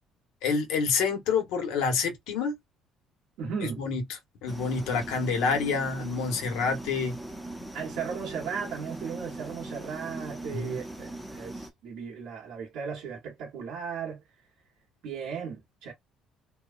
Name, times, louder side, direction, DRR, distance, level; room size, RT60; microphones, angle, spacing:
voice 1, 0.4-2.5 3.6-4.0 4.4-7.2 10.5-10.8, left 5 dB, 85° left, 1.2 m, -28 dB
voice 2, 3.4-3.8 7.7-14.2 15.0-15.9, right 6 dB, 75° right, 1.1 m, -36 dB
sound 1, 4.5-11.7, right 1 dB, ahead, 0.7 m, -40 dB
3.0 x 2.3 x 2.5 m
cardioid pair, 125°, 0 cm